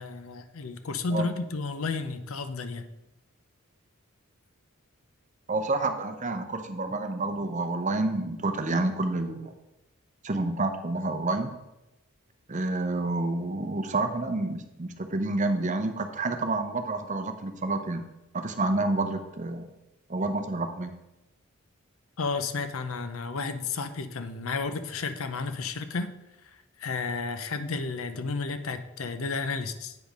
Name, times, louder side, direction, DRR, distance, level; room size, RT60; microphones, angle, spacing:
voice 1, 0.0-2.9 22.2-26.1 26.8-30.0, left 4 dB, 70° left, 10 dB, 0.6 m, -32 dB
voice 2, 5.5-9.5 10.2-11.6 12.5-18.0 18.3-19.7 20.1-20.9, right 2 dB, 35° right, 7 dB, 0.7 m, -29 dB
8.0 x 5.1 x 5.1 m, 0.96 s
head